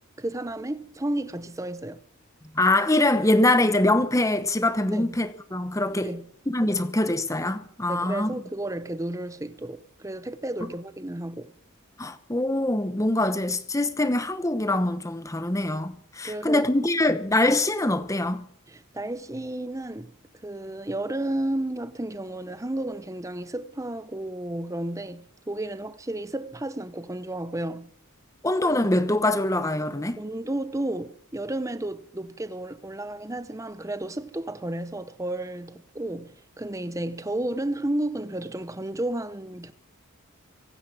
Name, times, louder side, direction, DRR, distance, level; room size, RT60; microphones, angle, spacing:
voice 1, 0.2-2.0 4.9-5.2 5.9-6.3 7.9-11.5 16.2-16.7 17.1-17.2 18.7-20.1 20.4-27.9 30.2-39.7, right 1 dB, 15° right, 0.8 m, -32 dB
voice 2, 2.5-6.1 6.5-8.3 12.0-18.4 28.4-30.2, left 1 dB, 15° left, 1.0 m, -24 dB
24.0 x 9.5 x 6.2 m
head